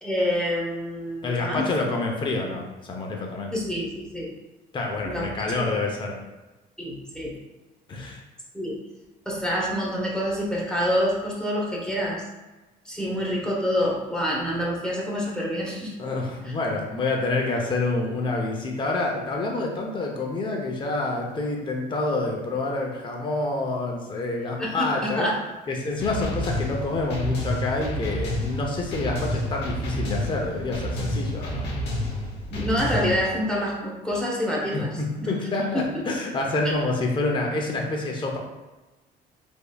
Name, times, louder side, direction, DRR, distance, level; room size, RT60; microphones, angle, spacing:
voice 1, 0.0-1.7 3.5-4.3 5.0-5.7 6.8-7.3 8.0-8.1 8.5-8.7 9.3-12.2 12.8-15.9 24.6-25.3 32.5-34.9 35.2-35.3 35.7-36.0, equal, 5° left, -5 dB, 0.9 m, -27 dB
voice 2, 1.2-3.5 4.7-6.2 7.9-8.2 16.0-25.3 25.7-31.7 34.7-38.4, left 2 dB, 30° left, 0 dB, 0.6 m, -27 dB
sound 1, 26.0-33.2, equal, 75° left, 0.9 m, -29 dB
3.6 x 3.5 x 2.3 m, 1.1 s
cardioid pair, 110°, 17 cm